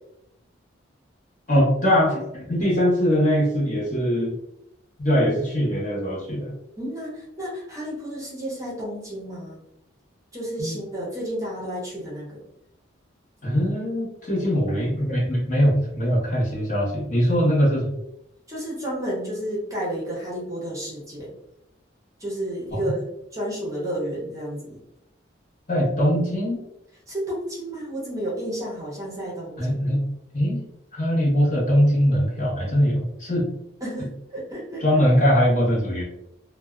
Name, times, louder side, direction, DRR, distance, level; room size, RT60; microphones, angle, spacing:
voice 1, 1.5-4.3 5.0-6.5 10.6-10.8 13.4-17.9 22.7-22.8 25.7-26.6 29.6-30.0 30.3-30.6 30.9-33.5 34.8-36.0, equal, 40° left, -6 dB, 0.9 m, -21 dB
voice 2, 6.8-9.6 10.3-12.4 17.4-17.5 18.5-21.3 22.2-23.0 23.3-24.8 27.1-29.8 33.8-34.8, right 1 dB, 15° right, -5 dB, 0.7 m, -31 dB
2.6 x 2.1 x 2.3 m, 0.82 s
head